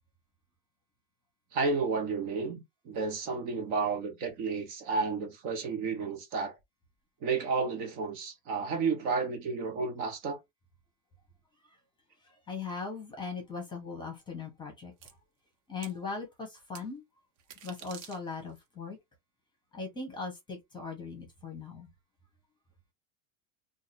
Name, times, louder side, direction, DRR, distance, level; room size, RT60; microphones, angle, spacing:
voice 1, 1.5-6.6 7.2-10.4, right 4 dB, 45° right, 1.2 m, -32 dB
voice 2, 12.5-14.9 15.7-17.0 17.6-19.0 19.7-21.9, left 4 dB, 10° left, 1.1 m, -39 dB
sound 1, 15.0-15.1 15.8-16.0 16.8-16.9 17.4-18.6, right 9 dB, 75° right, 1.1 m, -48 dB
2.8 x 2.5 x 4.2 m
supercardioid pair, 165°, 39 cm